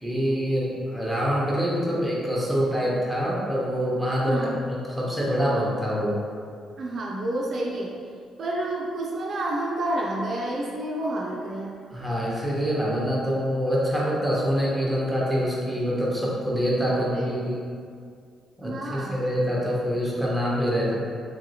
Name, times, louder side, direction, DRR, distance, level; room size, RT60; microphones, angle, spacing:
voice 1, 0.0-6.1 11.9-17.6 18.6-21.0, equal, ahead, -6 dB, 0.9 m, -25 dB
voice 2, 4.3-4.6 6.8-8.0 8.4-11.8 16.9-17.4 18.6-19.3, right 1 dB, 55° right, -2 dB, 0.4 m, -29 dB
3.0 x 2.7 x 2.8 m, 2.2 s
cardioid pair, 90°, 0 cm